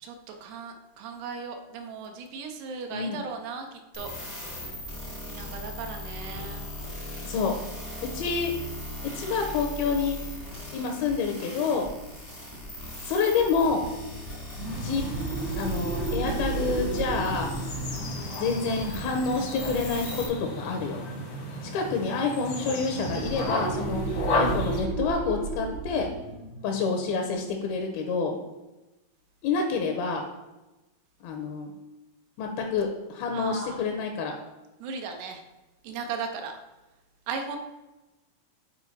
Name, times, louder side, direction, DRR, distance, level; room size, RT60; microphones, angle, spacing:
voice 1, 0.4-4.1 5.3-6.6 33.3-33.8 34.8-35.4 35.8-36.5 37.3-37.6, right 5 dB, 80° right, 4 dB, 2.9 m, -36 dB
voice 2, 2.9-3.2 7.2-7.5 8.1-8.5 9.1-10.2 10.7-11.9 13.0-13.8 14.8-15.0 15.6-17.5 18.4-21.0 21.7-24.0 24.3-26.1 26.6-28.4 29.4-30.3 31.2-31.7 32.4-34.4, left 5 dB, 80° left, 3 dB, 2.5 m, -28 dB
sound 1, 3.9-20.3, left 1 dB, 30° left, 0.6 m, -39 dB
sound 2, 14.5-19.9 22.9-28.2, right 4 dB, 65° right, 1.8 m, -34 dB
sound 3, 14.6-24.8, left 1 dB, 65° left, 1.2 m, -34 dB
8.5 x 4.4 x 4.1 m, 1.0 s
omnidirectional pair, 4.6 m